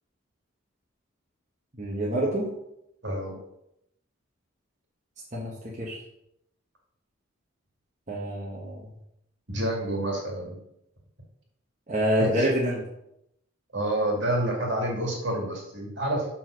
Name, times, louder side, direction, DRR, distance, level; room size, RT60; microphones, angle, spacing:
voice 1, 1.8-2.4 5.3-5.5 5.8-6.0 8.1-8.8 11.9-12.8, equal, 35° right, -5 dB, 1.2 m, -26 dB
voice 2, 3.0-3.4 9.5-10.6 12.2-12.5 13.7-16.3, right 1 dB, 60° right, -1 dB, 2.2 m, -28 dB
5.6 x 4.7 x 6.2 m, 0.81 s
head